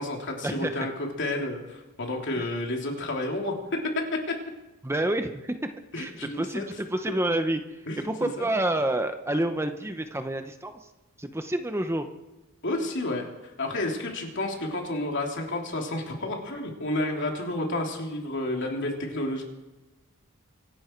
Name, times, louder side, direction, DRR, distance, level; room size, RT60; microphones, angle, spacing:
voice 1, 0.0-3.5 4.1-4.3 5.9-6.7 7.9-8.5 12.6-19.4, left 1 dB, 60° left, 1 dB, 3.1 m, -31 dB
voice 2, 4.8-5.6 5.9-6.1 6.4-10.7 11.2-12.1, right 1 dB, 10° right, 7 dB, 0.8 m, -28 dB
25.5 x 11.0 x 4.5 m, 1.2 s
head